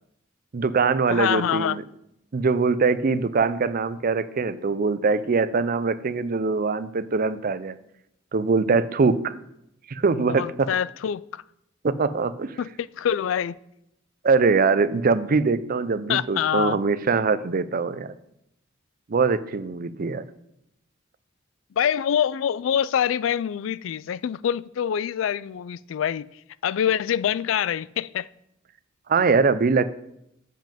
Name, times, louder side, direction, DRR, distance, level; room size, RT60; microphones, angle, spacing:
voice 1, 0.5-1.8 2.3-7.8 8.3-9.4 9.9-10.7 11.8-12.6 14.2-18.1 19.1-20.2 29.1-29.9, right 4 dB, 45° right, 0.5 m, -22 dB
voice 2, 1.1-1.8 10.2-11.4 12.6-13.6 16.1-16.8 21.8-26.3 26.6-28.3, left 9 dB, 70° left, 0.3 m, -25 dB
7.5 x 5.4 x 7.4 m
head